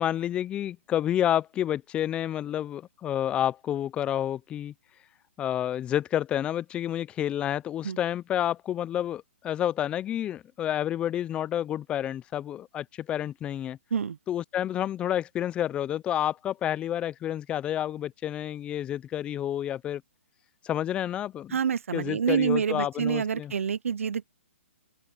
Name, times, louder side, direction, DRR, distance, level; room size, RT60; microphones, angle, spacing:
voice 1, 0.0-4.7 5.4-13.8 14.3-20.0 20.6-21.6 21.9-23.5, left 11 dB, 15° left, 0.5 m, -29 dB
voice 2, 21.5-24.3, right 7 dB, 75° right, 0.6 m, -27 dB
hypercardioid pair, 150°, 7 cm